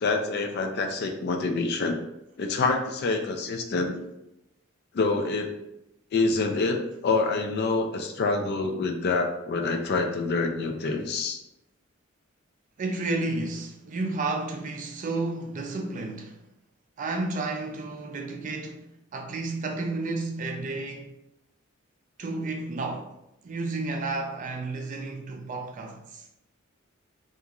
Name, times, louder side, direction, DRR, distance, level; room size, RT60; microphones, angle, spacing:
voice 1, 0.0-2.0 2.4-4.0 4.9-5.5 6.1-11.4, left 3 dB, 50° left, 0.3 m, -26 dB
voice 2, 12.8-16.4 17.0-18.8 19.1-21.1 22.2-23.1 23.4-26.3, right 2 dB, 40° right, 0.3 m, -31 dB
2.9 x 2.4 x 2.3 m
head